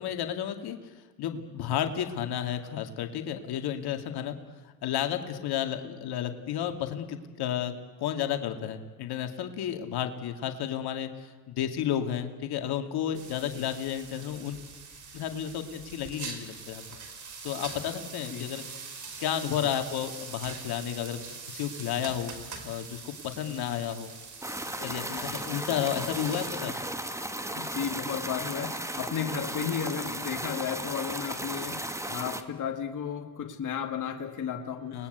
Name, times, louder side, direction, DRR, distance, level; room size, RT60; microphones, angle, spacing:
voice 1, 0.0-4.4 4.8-7.7 8.0-14.6 15.1-16.8 17.4-18.6 19.2-22.4 22.6-24.1 24.8-26.7 34.9-35.1, left 10 dB, 60° left, 6 dB, 2.5 m, -32 dB
sound 1, 13.1-26.5, right 5 dB, 40° right, 5.0 m, -43 dB
sound 2, 24.4-32.4, right 1 dB, 5° right, 2.1 m, -35 dB
voice 2, 25.1-25.4 27.5-35.1, left 8 dB, 45° left, 4 dB, 2.3 m, -34 dB
30.0 x 20.5 x 8.1 m, 1.3 s
supercardioid pair, 80°, 43 cm